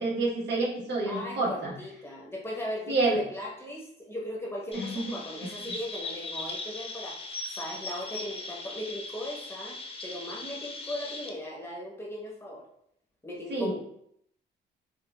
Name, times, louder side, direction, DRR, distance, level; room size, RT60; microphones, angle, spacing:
voice 1, 0.0-1.7 2.9-3.2 4.7-5.1 13.5-13.8, right 2 dB, 60° right, -2 dB, 1.1 m, -28 dB
voice 2, 1.1-12.7 13.2-13.8, left 1 dB, 10° left, -3 dB, 1.0 m, -38 dB
Chirp tweet, 4.7-11.3, left 2 dB, 30° left, 0.6 m, -39 dB
4.8 x 2.2 x 2.3 m, 0.71 s
cardioid pair, 90°, 20 cm